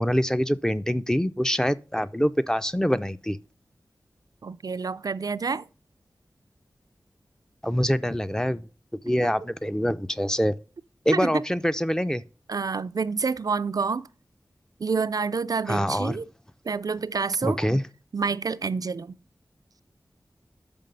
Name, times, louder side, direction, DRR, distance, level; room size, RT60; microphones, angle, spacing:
voice 1, 0.0-3.4 7.6-8.7 9.0-10.6 11.1-12.2 15.7-16.2 17.4-17.8, equal, 10° left, 0.4 m, -25 dB
voice 2, 4.4-5.7 11.1-11.4 12.5-14.1 14.8-16.3 16.6-17.6 18.1-19.2, right 5 dB, 60° right, 0.3 m, -28 dB
5.8 x 5.2 x 6.7 m
wide cardioid pair, 50°, 7 cm